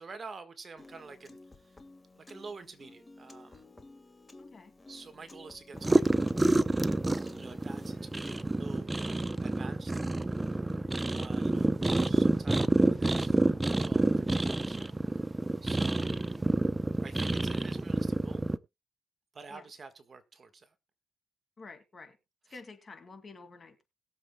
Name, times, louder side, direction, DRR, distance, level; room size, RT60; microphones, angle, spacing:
voice 1, 0.0-1.8 2.2-3.7 4.9-6.0 7.3-8.9 9.4-10.0 11.1-13.4 13.8-14.8 15.6-16.2 17.0-18.4 19.3-20.7, right 4 dB, 40° right, 9 dB, 1.5 m, -48 dB
Piano, 0.8-8.8, left 2 dB, 20° left, 1.7 m, -53 dB
voice 2, 4.4-4.7 10.7-11.0 15.9-16.1 19.5-19.7 21.6-22.2 22.5-23.8, left 4 dB, 35° left, 7 dB, 2.3 m, -50 dB
sound 1, 5.7-18.6, right 2 dB, 15° right, 0.7 m, -28 dB
21.0 x 7.3 x 2.3 m, 0.23 s
cardioid pair, 90°, 0 cm